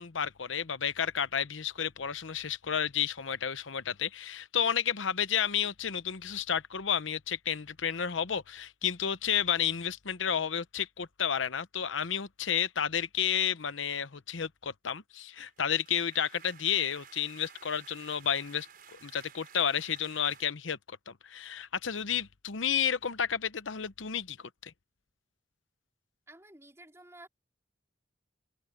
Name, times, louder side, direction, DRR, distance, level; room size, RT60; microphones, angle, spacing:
voice 1, 0.0-18.7 19.0-24.4 24.6-24.7, left 8 dB, 85° left, 0.9 m, -31 dB
sound 1, 15.4-20.4, right 7 dB, 50° right, 6.6 m, -54 dB
voice 2, 26.3-27.3, right 1 dB, 15° right, 4.1 m, -52 dB
head